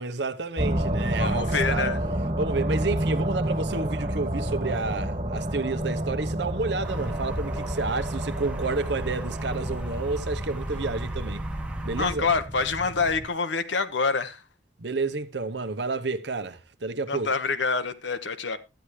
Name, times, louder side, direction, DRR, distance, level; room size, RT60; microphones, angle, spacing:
voice 1, 0.0-1.9 2.4-11.4 11.8-12.3 14.8-17.3, right 3 dB, 70° right, 0.9 m, -30 dB
sound 1, 0.6-13.3, right 1 dB, 35° right, 1.8 m, -30 dB
voice 2, 1.2-2.0 12.0-14.4 17.1-18.6, left 4 dB, 80° left, 1.1 m, -26 dB
sound 2, 6.8-12.2, right 1 dB, 5° right, 1.0 m, -35 dB
13.0 x 9.9 x 3.2 m
head